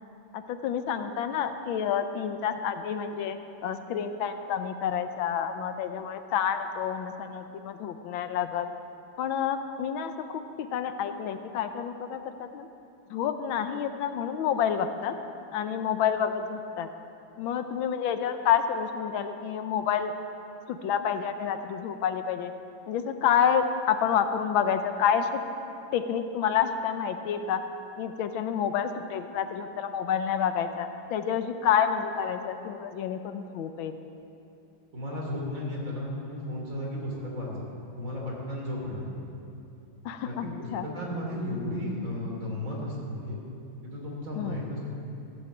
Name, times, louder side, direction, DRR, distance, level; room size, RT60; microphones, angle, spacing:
voice 1, 0.3-3.4 3.6-8.7 9.2-12.7 13.1-15.1 15.5-16.9 17.4-20.1 20.7-22.5 22.9-25.4 25.9-27.6 28.0-34.0 40.0-40.9 41.5-41.6 44.4-44.6, left 8 dB, 85° left, 9 dB, 1.5 m, -29 dB
voice 2, 34.9-37.7 38.0-39.1 40.2-43.4 43.8-44.9, left 1 dB, 40° right, -3 dB, 3.2 m, -34 dB
15.5 x 7.2 x 7.8 m, 2.7 s
omnidirectional pair, 2.2 m